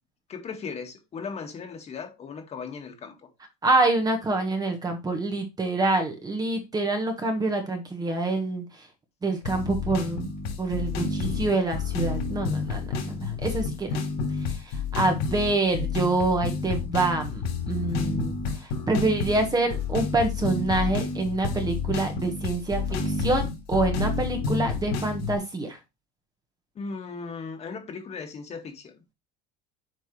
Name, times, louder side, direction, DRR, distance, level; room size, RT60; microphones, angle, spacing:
voice 1, 0.3-3.3 4.3-4.4 26.8-28.9, left 5 dB, 30° left, 4 dB, 1.8 m, -37 dB
voice 2, 3.6-8.6 9.2-10.3 10.6-14.0 14.5-25.8, right 2 dB, 20° right, 5 dB, 1.3 m, -26 dB
sound 1, 9.4-25.4, left 4 dB, 75° left, 3.4 m, -29 dB
7.9 x 4.6 x 3.1 m, 0.24 s
cardioid pair, 130°, 21 cm